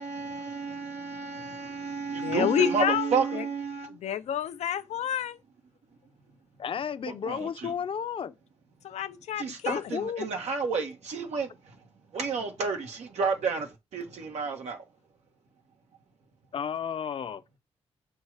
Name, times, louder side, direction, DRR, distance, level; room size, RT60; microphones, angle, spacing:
voice 1, 0.0-4.0 7.2-7.7 9.4-11.5 12.1-14.8, right 5 dB, 85° right, 1.5 m, -31 dB
voice 2, 2.2-3.1 3.4-3.5 4.0-5.4 8.8-9.8, left 10 dB, 90° left, 0.7 m, -29 dB
voice 3, 6.6-8.3 9.7-10.3 16.5-17.4, left 7 dB, 55° left, 0.7 m, -32 dB
6.3 x 4.3 x 4.9 m
cardioid pair, 110°, 11 cm